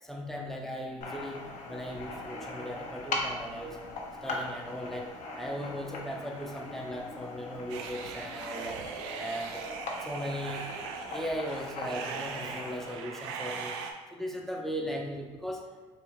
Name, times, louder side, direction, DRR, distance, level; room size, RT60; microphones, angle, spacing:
voice 1, 0.0-1.4 1.7-3.8 4.2-5.1 5.4-8.8 9.2-9.6 10.0-10.6 11.1-13.8 14.1-15.7, equal, ahead, 0 dB, 0.6 m, -37 dB
sound 1, 1.0-12.9, left 2 dB, 55° left, 0.7 m, -40 dB
sound 2, 7.7-13.9, right 5 dB, 80° right, 0.4 m, -40 dB
3.7 x 2.4 x 3.1 m, 1.3 s
hypercardioid pair, 70°, 15 cm